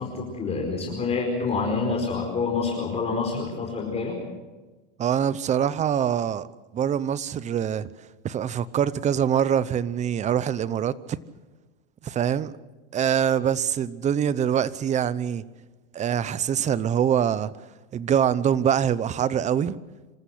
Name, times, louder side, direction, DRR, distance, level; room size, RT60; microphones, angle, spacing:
voice 1, 0.0-4.2, left 4 dB, 20° left, 4.7 m, -27 dB
voice 2, 5.0-6.5 6.7-7.9 8.2-11.2 12.0-12.5 12.9-15.4 15.9-17.5 17.9-19.8, right 9 dB, 25° right, 0.8 m, -24 dB
26.5 x 14.5 x 7.9 m
supercardioid pair, 135°, 29 cm